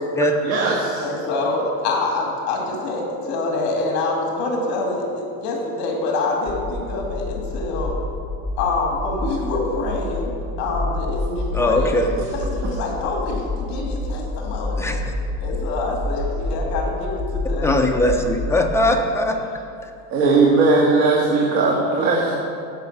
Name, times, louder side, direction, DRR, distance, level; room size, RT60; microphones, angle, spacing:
voice 1, 0.4-1.0 20.1-22.3, right 3 dB, 70° right, -2 dB, 1.6 m, -18 dB
voice 2, 1.0-7.9 8.6-12.0 12.3-14.9 15.4-17.8, left 3 dB, 55° left, 0 dB, 2.2 m, -26 dB
sound 1, 6.5-18.6, left 2 dB, 5° right, 1.3 m, -28 dB
voice 3, 11.5-12.1 14.8-15.0 17.6-19.4, left 1 dB, 10° left, 2 dB, 0.4 m, -20 dB
15.0 x 5.8 x 5.4 m, 2.4 s
cardioid pair, 175°, 34 cm